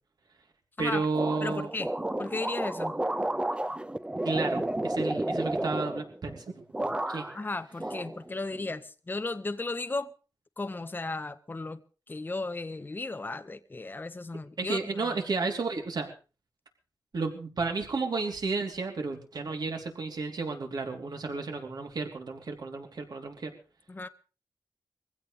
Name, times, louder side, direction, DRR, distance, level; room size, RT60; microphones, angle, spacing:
voice 1, 0.8-1.7 4.2-7.3 14.6-16.1 17.1-23.5, right 4 dB, 65° right, 3.1 m, -32 dB
sound 1, 1.1-6.4 6.7-7.5 7.8-8.7, right 1 dB, 15° right, 0.8 m, -32 dB
voice 2, 1.4-1.9 2.2-3.0 7.3-10.1 10.6-11.8 12.1-15.1 23.9-24.1, left 3 dB, 25° left, 0.8 m, -35 dB
22.5 x 16.0 x 3.3 m
wide cardioid pair, 85°, 7 cm